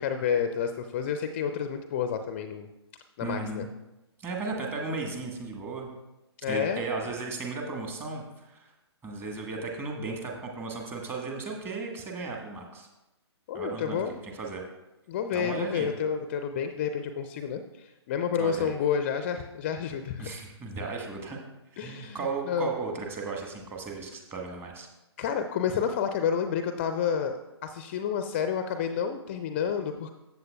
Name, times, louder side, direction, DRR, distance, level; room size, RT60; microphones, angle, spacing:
voice 1, 0.0-2.7 3.2-3.7 6.4-6.8 13.5-14.1 15.1-20.3 21.8-22.7 25.2-30.1, left 7 dB, 25° left, 8 dB, 0.4 m, -30 dB
voice 2, 3.2-3.7 4.2-5.9 6.5-8.7 9.0-12.9 13.5-14.6 15.3-15.9 18.4-18.7 20.2-21.4 21.8-24.9, right 3 dB, 15° right, 1 dB, 1.3 m, -35 dB
14.0 x 7.8 x 2.2 m, 0.98 s
figure-of-eight pair, 130°, 14 cm